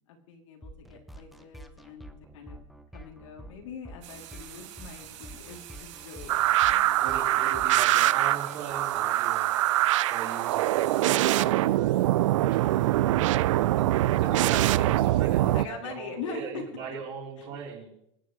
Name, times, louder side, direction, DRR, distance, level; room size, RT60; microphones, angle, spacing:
voice 1, 0.0-2.6 2.9-6.9 14.7-16.6, left 6 dB, 80° left, 1 dB, 3.1 m, -43 dB
sound 1, 0.6-9.0, right 1 dB, ahead, 0.6 m, -48 dB
sound 2, 4.0-11.1, right 11 dB, 70° right, 3.1 m, -46 dB
sound 3, 6.3-15.6, right 15 dB, 85° right, 0.5 m, -24 dB
voice 2, 7.0-9.8 10.1-12.9 13.3-17.9, right 6 dB, 35° right, -4 dB, 4.2 m, -39 dB
25.5 x 9.5 x 3.3 m, 0.80 s
supercardioid pair, 170°, 16 cm